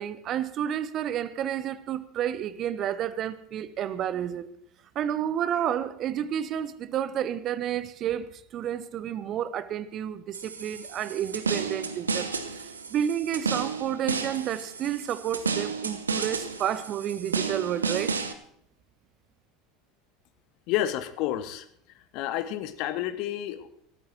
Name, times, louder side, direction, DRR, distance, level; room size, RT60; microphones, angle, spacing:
voice 1, 0.0-4.5 4.9-12.3 12.6-18.2, right 10 dB, 40° right, 0.9 m, -30 dB
sound 1, 10.3-18.3, right 5 dB, 75° right, 1.0 m, -32 dB
voice 2, 20.7-21.7 21.9-23.7, left 12 dB, 50° left, 1.0 m, -30 dB
20.5 x 13.5 x 3.0 m
figure-of-eight pair, 75°, 0 cm